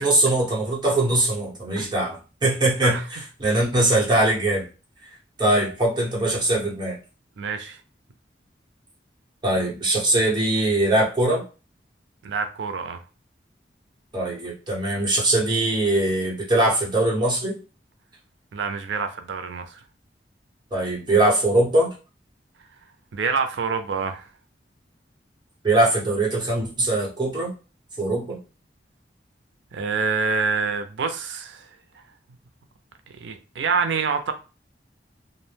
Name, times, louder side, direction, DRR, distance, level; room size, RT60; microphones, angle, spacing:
voice 1, 0.0-4.7 5.4-7.0 9.4-11.4 14.1-17.6 20.7-21.9 25.6-27.5 28.0-28.4, right 1 dB, 25° right, 0.9 m, -21 dB
voice 2, 7.4-7.8 12.2-13.0 18.5-19.8 23.1-24.3 29.7-31.7 33.2-34.3, right 5 dB, 80° right, 0.4 m, -26 dB
2.4 x 2.1 x 3.2 m
head